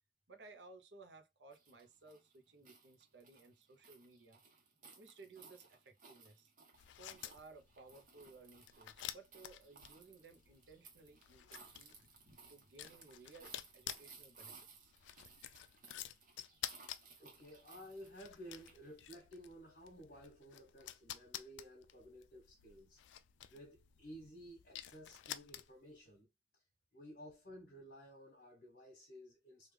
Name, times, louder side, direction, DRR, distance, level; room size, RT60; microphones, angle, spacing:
voice 1, 0.3-4.4 5.0-6.5 7.0-11.9 12.5-14.9, right 3 dB, 75° right, 0.7 m, -59 dB
sound 1, 1.5-19.2, right 4 dB, 45° right, 0.9 m, -61 dB
sound 2, 6.7-26.0, left 12 dB, 90° left, 0.3 m, -51 dB
voice 2, 17.2-23.0 23.5-26.3 26.9-29.7, equal, 55° left, 1.2 m, -55 dB
3.3 x 2.4 x 3.2 m
head